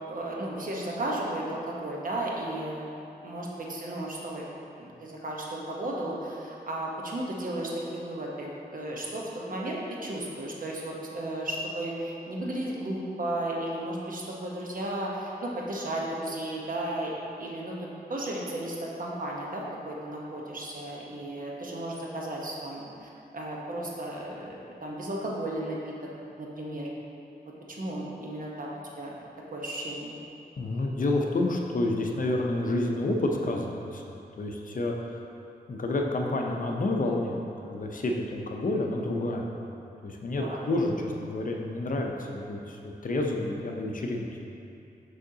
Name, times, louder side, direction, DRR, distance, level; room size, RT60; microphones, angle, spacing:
voice 1, 0.1-2.9 3.2-4.5 4.8-17.1 17.4-17.8 18.1-25.9 26.4-26.9 27.4-28.7 29.0-30.2 40.4-40.6, right 1 dB, 55° right, -3 dB, 1.0 m, -34 dB
voice 2, 30.6-34.9 35.7-39.5 40.0-44.3, left 2 dB, 50° left, 1 dB, 0.6 m, -29 dB
6.3 x 5.6 x 2.8 m, 2.7 s
cardioid pair, 70°, 17 cm